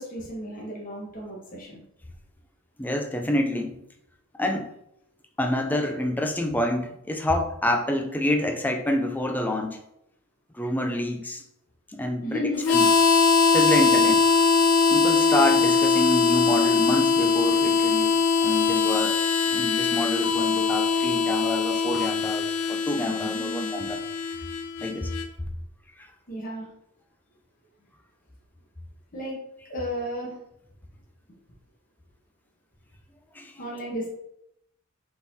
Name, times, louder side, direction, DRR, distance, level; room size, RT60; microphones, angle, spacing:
voice 1, 0.0-1.8 12.2-12.6 13.8-14.1 18.7-19.0 23.0-23.7 26.3-26.7 29.1-29.4 29.7-30.4 33.6-34.1, equal, 40° left, -3 dB, 1.0 m, -34 dB
voice 2, 2.8-3.8 4.4-4.7 5.4-9.8 10.5-11.4 11.9-12.9 13.5-14.2 14.9-19.2 19.5-24.0 24.8-25.1 26.0-26.1 33.3-33.5, left 1 dB, 10° left, 4 dB, 0.3 m, -27 dB
Harmonica, 12.6-25.3, left 5 dB, 85° left, 0.4 m, -22 dB
4.3 x 3.9 x 2.7 m, 0.78 s
head